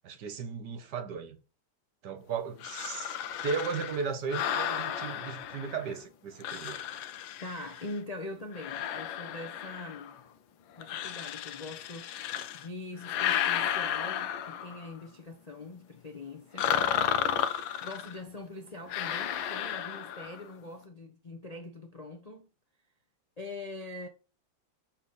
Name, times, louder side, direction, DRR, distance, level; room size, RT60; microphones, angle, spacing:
voice 1, 0.0-1.4 2.0-3.2 3.4-6.8, right 5 dB, 65° right, 1.5 m, -36 dB
sound 1, 2.6-6.0 6.4-8.0 8.5-10.2 10.8-12.7 13.0-14.9 16.6-18.2 18.9-20.4, left 10 dB, 90° left, 1.4 m, -33 dB
voice 2, 7.4-10.2 10.8-16.8 17.8-22.5 23.4-24.1, left 2 dB, 55° left, 0.4 m, -43 dB
6.8 x 4.0 x 4.1 m
omnidirectional pair, 2.1 m